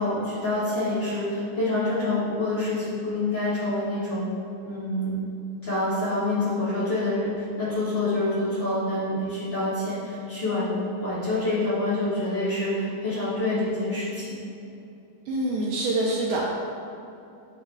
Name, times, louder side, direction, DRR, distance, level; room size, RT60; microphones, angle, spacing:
voice 1, 0.0-4.2 4.6-5.1 5.6-10.7 11.0-14.3, left 2 dB, 70° left, -12 dB, 1.0 m, -27 dB
voice 2, 15.3-16.4, right 2 dB, 90° right, -4 dB, 1.8 m, -25 dB
10.0 x 5.2 x 2.6 m, 2.7 s
omnidirectional pair, 4.6 m